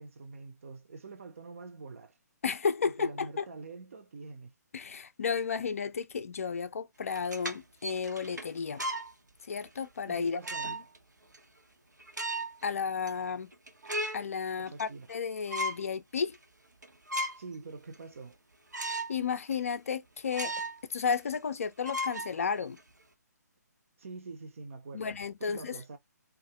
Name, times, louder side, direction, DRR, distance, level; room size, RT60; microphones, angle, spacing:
voice 1, 0.0-2.1 2.8-4.5 10.1-10.8 14.6-15.1 17.4-18.4 24.0-26.0, right 4 dB, 50° right, 0.6 m, -45 dB
voice 2, 2.4-3.5 4.7-8.8 9.5-10.8 12.6-13.5 14.1-16.4 19.1-20.5 20.9-22.8 24.9-25.8, left 6 dB, 50° left, 0.4 m, -33 dB
sound 1, 7.1-9.1 9.7-9.8 10.4-11.0 11.3-11.4 12.0-12.6 13.1-13.2 13.5-14.3 14.7-15.2 15.5-15.9 16.3-16.4 16.8-17.6 17.9-18.0 18.7-19.2 19.5-19.6 20.3-20.8 21.1-21.2 21.8-22.8, right 1 dB, 80° right, 0.8 m, -36 dB
2.6 x 2.4 x 2.8 m
figure-of-eight pair, 140°, 10 cm